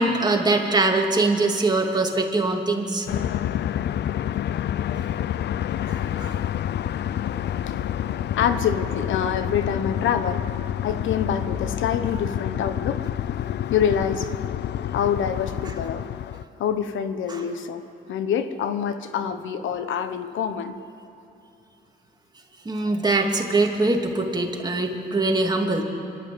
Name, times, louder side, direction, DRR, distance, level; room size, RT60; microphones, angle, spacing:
voice 1, 0.0-3.1 5.0-5.1 5.9-6.3 17.3-17.4 22.6-25.8, right 2 dB, 20° right, 1 dB, 2.7 m, -23 dB
sound 1, 3.1-16.4, left 11 dB, 60° left, 0.5 m, -28 dB
voice 2, 8.4-10.5 10.8-13.1 13.7-14.3 14.9-16.1 16.6-20.8, left 8 dB, 75° left, 10 dB, 1.1 m, -26 dB
26.0 x 12.5 x 8.8 m, 2.7 s
cardioid pair, 90°, 20 cm